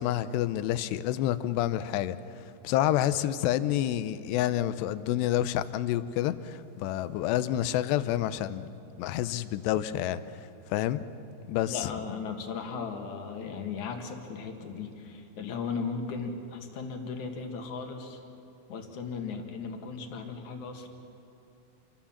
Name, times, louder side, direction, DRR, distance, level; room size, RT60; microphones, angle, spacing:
voice 1, 0.0-8.7 9.0-11.0 11.5-11.9, left 12 dB, 80° left, 2.8 m, -29 dB
voice 2, 11.7-18.2 18.7-20.9, left 5 dB, 55° left, 2.7 m, -36 dB
28.0 x 22.5 x 7.3 m
omnidirectional pair, 5.2 m